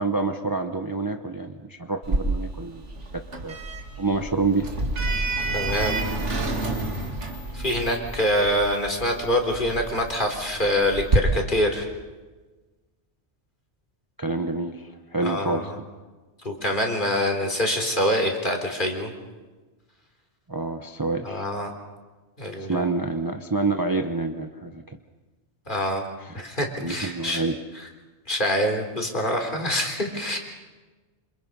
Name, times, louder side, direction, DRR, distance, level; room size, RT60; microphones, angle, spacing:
voice 1, 0.0-2.9 3.1-3.6 4.0-4.7 14.2-15.7 20.5-21.4 22.7-25.0 25.8-26.4 26.8-27.6, right 3 dB, 20° right, 6 dB, 1.0 m, -27 dB
Sliding door, 2.0-11.2, right 2 dB, 85° right, 2.7 m, -29 dB
voice 2, 5.5-6.0 7.5-11.9 15.2-15.8 16.4-19.1 21.2-21.7 22.4-22.9 25.7-26.1 26.3-27.5 27.7-27.8 28.3-30.4, equal, 45° left, 3 dB, 3.8 m, -25 dB
27.5 x 27.0 x 5.5 m, 1.3 s
omnidirectional pair, 1.2 m